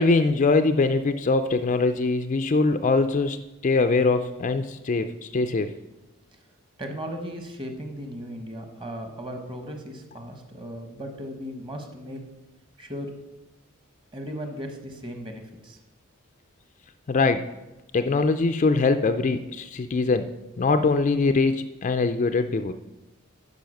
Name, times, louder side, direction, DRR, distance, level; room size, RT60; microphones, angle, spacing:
voice 1, 0.0-5.7 17.1-17.4 17.9-20.3 20.6-22.7, left 3 dB, 35° left, 9 dB, 0.4 m, -22 dB
voice 2, 6.8-12.2 12.8-13.1 14.1-15.8, equal, 25° right, 5 dB, 1.2 m, -36 dB
10.5 x 5.4 x 6.4 m, 1.0 s
head